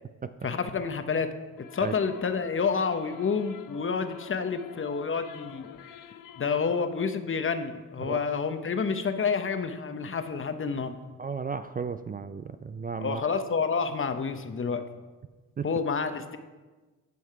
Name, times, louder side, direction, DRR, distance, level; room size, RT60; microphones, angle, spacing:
voice 1, 0.4-1.3 1.6-5.7 6.4-11.0 13.0-14.8 15.6-16.4, left 5 dB, 40° left, 9 dB, 0.8 m, -29 dB
sound 1, 1.6-7.0, left 9 dB, 80° left, 0.6 m, -47 dB
voice 2, 11.2-13.2 15.6-15.7, right 5 dB, 30° right, 11 dB, 0.4 m, -34 dB
9.4 x 5.7 x 4.7 m, 1.2 s
cardioid pair, 65°, 32 cm